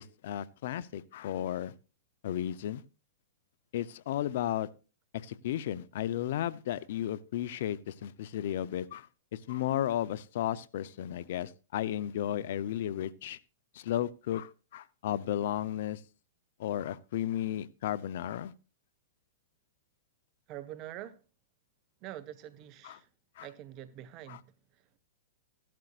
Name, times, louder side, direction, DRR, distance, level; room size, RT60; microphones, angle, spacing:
voice 1, 0.0-1.7 2.2-2.8 3.7-4.7 5.1-13.4 13.7-16.0 16.6-18.5 22.8-23.0 23.4-23.5 24.3-24.4, left 11 dB, 65° left, 0.7 m, -34 dB
voice 2, 20.5-21.2 22.0-23.1 23.4-25.0, right 12 dB, 40° right, 1.3 m, -45 dB
15.5 x 12.0 x 2.5 m
hypercardioid pair, 120°, 0 cm